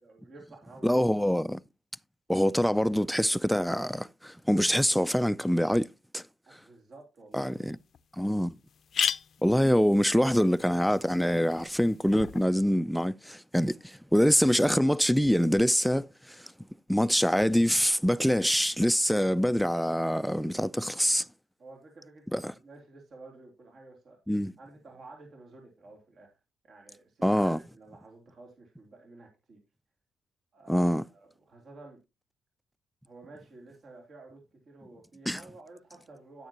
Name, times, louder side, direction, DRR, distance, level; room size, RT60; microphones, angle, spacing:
voice 1, 0.0-1.0 6.5-7.5 13.5-13.6 21.6-24.2 24.6-26.3 26.6-29.6 30.5-32.0 33.0-36.5, right 3 dB, 50° right, 3.1 m, -51 dB
voice 2, 0.8-1.6 2.3-5.9 6.1-6.2 7.3-7.8 8.2-8.5 9.4-16.4 16.9-21.3 22.3-22.5 24.3-24.5 27.2-27.6 30.7-31.0 35.3-35.4, equal, ahead, 0.4 m, -25 dB
sound 1, 7.4-7.5 7.9-8.0 8.2-8.3 8.7-12.4, left 7 dB, 55° left, 0.5 m, -36 dB
9.9 x 9.3 x 2.9 m
cardioid pair, 90°, 0 cm